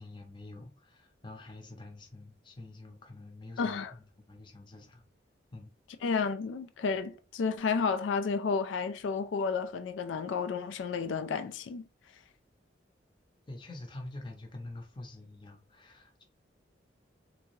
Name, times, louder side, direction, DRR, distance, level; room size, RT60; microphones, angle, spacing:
voice 1, 0.0-5.0 5.5-5.7 13.5-16.2, left 2 dB, 25° left, 0.7 m, -47 dB
voice 2, 3.6-3.9 6.0-11.8, left 5 dB, 90° left, 0.4 m, -31 dB
3.3 x 2.7 x 3.1 m
head